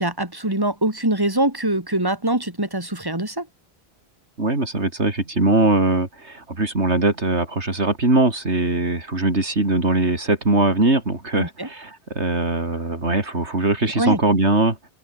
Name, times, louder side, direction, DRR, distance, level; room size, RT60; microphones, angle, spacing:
voice 1, 0.0-3.5 11.4-11.7 14.0-14.2, right 1 dB, 20° right, 3.9 m, -23 dB
voice 2, 4.4-14.8, right 2 dB, 90° right, 4.3 m, -21 dB
open air
omnidirectional pair, 1.1 m